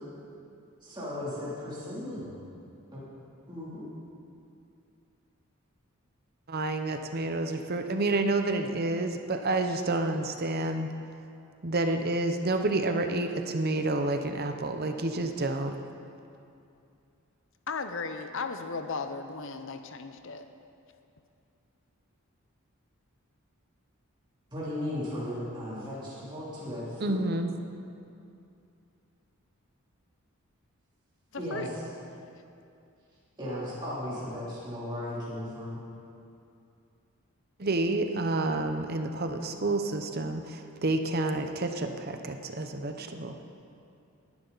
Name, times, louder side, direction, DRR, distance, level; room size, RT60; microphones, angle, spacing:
voice 1, 0.8-2.3 2.9-3.0 3.5-3.9 24.5-27.2 31.4-31.7 33.4-35.8, left 1 dB, 20° right, -9 dB, 3.0 m, -36 dB
voice 2, 6.5-10.9 11.6-15.7 27.0-27.5 37.6-43.3, right 2 dB, 45° right, 6 dB, 0.8 m, -29 dB
voice 3, 17.7-20.5 31.3-31.7, left 4 dB, 60° left, 8 dB, 0.8 m, -36 dB
19.0 x 10.5 x 4.0 m, 2.6 s
head